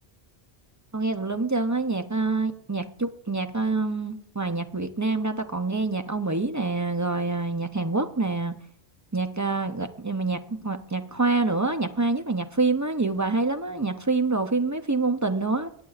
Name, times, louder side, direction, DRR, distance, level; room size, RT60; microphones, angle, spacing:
voice 1, 0.9-8.6 9.1-15.7, right 3 dB, 30° right, 8 dB, 0.3 m, -26 dB
21.0 x 8.6 x 2.4 m, 0.68 s
omnidirectional pair, 1.1 m